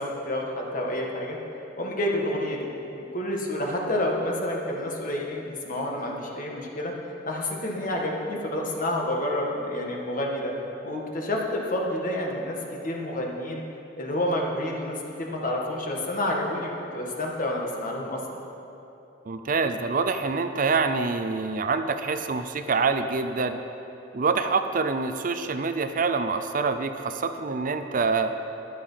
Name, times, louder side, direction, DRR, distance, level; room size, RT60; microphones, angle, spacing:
voice 1, 0.0-1.4 1.8-2.7 2.9-6.9 7.2-10.5 10.8-12.6 12.8-13.6 14.0-18.4, left 1 dB, 45° left, -1 dB, 1.8 m, -29 dB
voice 2, 19.3-23.6 24.1-28.3, right 4 dB, 45° right, 8 dB, 0.6 m, -26 dB
13.5 x 10.5 x 5.7 m, 3.0 s
head